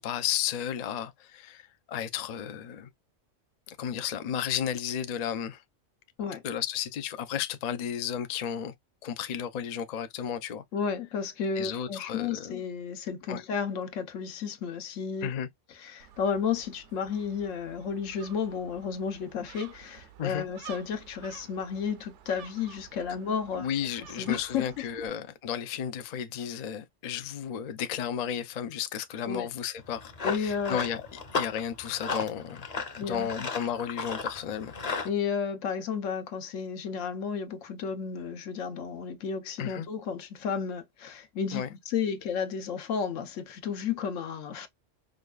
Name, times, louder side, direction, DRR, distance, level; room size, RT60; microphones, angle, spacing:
voice 1, 0.0-2.9 3.7-5.6 6.4-8.7 9.0-10.6 11.6-12.6 13.3-13.4 15.2-15.5 20.2-20.5 23.6-32.7 33.1-34.8 39.6-39.9 41.5-41.7, left 9 dB, 60° left, 0.4 m, -33 dB
voice 2, 10.7-15.3 15.8-23.7 24.2-24.9 29.3-29.5 30.2-30.8 33.0-33.3 35.0-44.7, left 6 dB, 85° left, 1.1 m, -32 dB
Gull seagull, 16.0-25.1, right 10 dB, 70° right, 0.9 m, -51 dB
Run, 29.8-35.1, left 4 dB, 40° left, 0.7 m, -35 dB
5.0 x 2.3 x 2.3 m
omnidirectional pair, 1.3 m